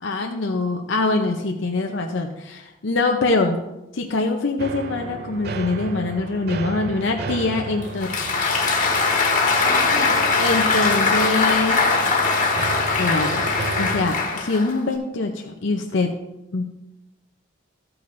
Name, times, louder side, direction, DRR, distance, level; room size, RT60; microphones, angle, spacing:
voice 1, 0.0-3.6 3.9-8.1 10.4-11.8 13.0-13.5 13.8-16.1 16.5-16.6, left 3 dB, 65° left, 3 dB, 0.6 m, -23 dB
sound 1, 4.6-14.1, right 3 dB, 50° right, 0.5 m, -34 dB
Applause, 7.8-14.9, left 4 dB, 40° left, 1.5 m, -21 dB
13.0 x 8.6 x 2.6 m, 0.94 s
head